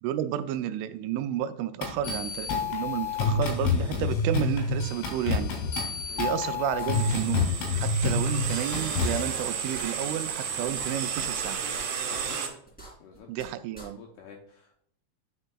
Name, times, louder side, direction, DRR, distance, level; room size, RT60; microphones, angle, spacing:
voice 1, 0.0-5.5 6.2-11.6 13.3-14.0, right 11 dB, 85° right, 10 dB, 3.0 m, -31 dB
sound 1, 1.8-9.2, left 4 dB, 65° left, 4.5 m, -28 dB
sound 2, 6.8-7.5 7.7-7.9 8.3-8.4 8.7-9.5 9.7-9.9 10.3-10.4 10.7-11.4 11.7-11.8 12.3-12.4 12.7-13.5 13.7-13.9, right 2 dB, 5° left, 0.9 m, -46 dB
sound 3, 6.9-12.5, right 7 dB, 65° right, 3.1 m, -32 dB
voice 2, 14.0-14.8, left 7 dB, 85° left, 0 dB, 2.3 m, -48 dB
9.7 x 6.5 x 2.3 m, 0.67 s
omnidirectional pair, 5.5 m